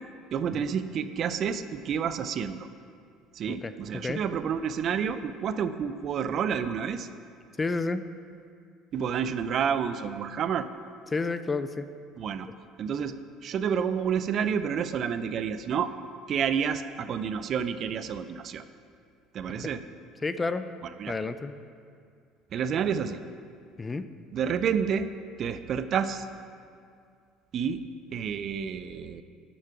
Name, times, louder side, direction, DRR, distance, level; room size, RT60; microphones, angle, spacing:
voice 1, 0.3-2.7 3.3-7.1 8.9-10.7 12.2-12.5 12.8-15.9 16.3-18.6 19.3-19.8 21.0-21.2 22.5-23.2 24.3-25.1 25.4-26.3 27.5-29.2, right 7 dB, 50° right, 12 dB, 0.5 m, -29 dB
voice 2, 3.5-4.2 7.6-8.0 11.1-11.9 12.4-12.5 19.6-19.7 20.2-20.7 21.1-21.6 23.8-24.1, left 3 dB, 25° left, 12 dB, 0.6 m, -31 dB
13.0 x 7.1 x 4.8 m, 2.3 s
hypercardioid pair, 65°, 0 cm